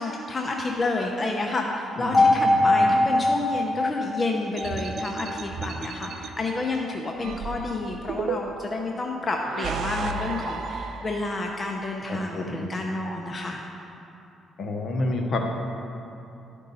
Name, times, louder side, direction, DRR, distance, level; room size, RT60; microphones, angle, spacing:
voice 1, 0.0-13.6, left 2 dB, 30° left, 1 dB, 0.6 m, -30 dB
voice 2, 2.0-2.9 12.1-12.7 14.6-15.4, left 2 dB, 55° left, 2 dB, 1.0 m, -30 dB
sound 1, 2.1-6.1, left 2 dB, ahead, 1.8 m, -23 dB
sound 2, 4.6-6.3 7.2-8.7 9.4-11.5, right 4 dB, 70° right, 0.5 m, -33 dB
11.0 x 5.3 x 4.1 m, 2.8 s
cardioid pair, 90°, 0 cm